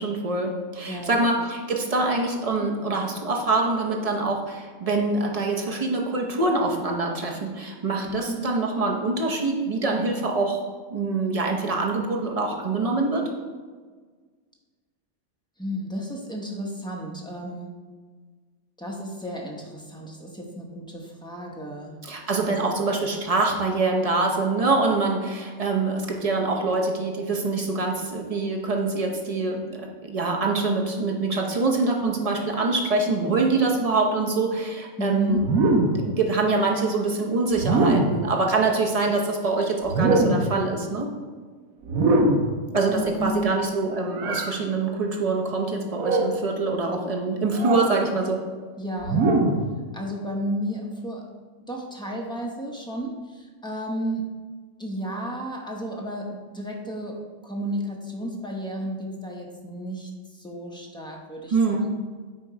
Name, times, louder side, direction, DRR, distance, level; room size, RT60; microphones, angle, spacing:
voice 1, 0.0-10.6 10.9-13.3 22.0-35.5 35.9-41.1 42.7-48.4 61.5-61.9, right 3 dB, 30° right, 1 dB, 0.7 m, -25 dB
voice 2, 0.9-1.2 8.0-8.4 15.6-17.8 18.8-21.9 35.0-35.4 42.9-43.5 48.8-49.2 49.9-51.3 51.7-54.3 54.8-61.9, equal, 5° left, -1 dB, 0.6 m, -32 dB
sound 1, 35.4-36.1 37.6-38.3 39.9-40.6 41.9-42.6 44.1-44.5 45.9-46.4 47.6-47.9 49.0-49.7, right 2 dB, 90° right, 1.3 m, -22 dB
8.6 x 3.0 x 4.7 m, 1.5 s
omnidirectional pair, 1.5 m